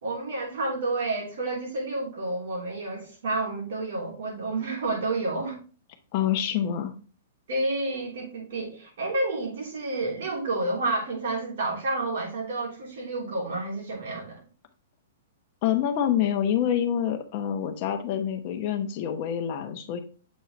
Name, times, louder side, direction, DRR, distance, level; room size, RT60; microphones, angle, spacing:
voice 1, 0.0-5.6 7.5-14.4, right 2 dB, 65° right, 3.1 m, -30 dB
voice 2, 6.1-6.9 15.6-20.0, left 9 dB, 35° left, 1.0 m, -26 dB
7.3 x 4.4 x 3.2 m
hypercardioid pair, 170°, 0 cm